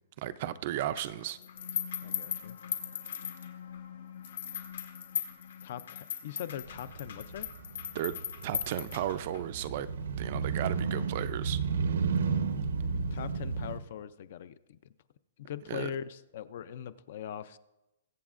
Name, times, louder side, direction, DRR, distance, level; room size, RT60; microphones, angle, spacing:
voice 1, 0.2-1.4 7.9-8.1 8.4-9.9 10.2-11.6 15.7-15.9, right 12 dB, 35° right, 13 dB, 0.4 m, -34 dB
sound 1, 1.0-3.8 4.2-9.4, left 9 dB, 65° left, 1.4 m, -38 dB
sound 2, 1.2-12.1, left 8 dB, 85° left, 1.7 m, -51 dB
voice 2, 2.0-2.6 5.6-7.5 13.1-14.8 15.5-17.6, left 10 dB, 40° left, 15 dB, 0.4 m, -41 dB
Motorcycle, 6.7-13.8, right 5 dB, 90° right, 0.9 m, -33 dB
21.5 x 8.1 x 2.5 m, 0.99 s
hypercardioid pair, 175°, 0 cm